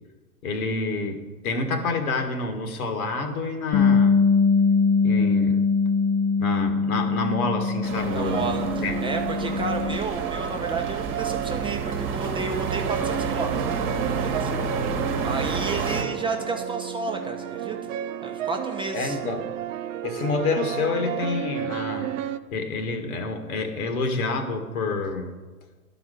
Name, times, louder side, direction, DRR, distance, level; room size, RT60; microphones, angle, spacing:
voice 1, 0.4-4.2 5.0-5.6 6.4-8.9 18.9-19.5 20.0-22.1 22.5-25.3, left 3 dB, 65° left, 6 dB, 1.8 m, -28 dB
Bass guitar, 3.7-10.0, left 5 dB, 45° left, 0.9 m, -22 dB
sound 1, 7.8-16.0, right 4 dB, 25° right, 1.4 m, -30 dB
voice 2, 8.1-13.6 13.9-14.5 15.2-17.8 18.2-19.2, right 3 dB, 10° right, 2 dB, 0.7 m, -31 dB
sound 2, 8.1-22.4, right 11 dB, 55° right, 0.6 m, -32 dB
11.5 x 4.9 x 6.5 m, 1.3 s
hypercardioid pair, 100°, 46 cm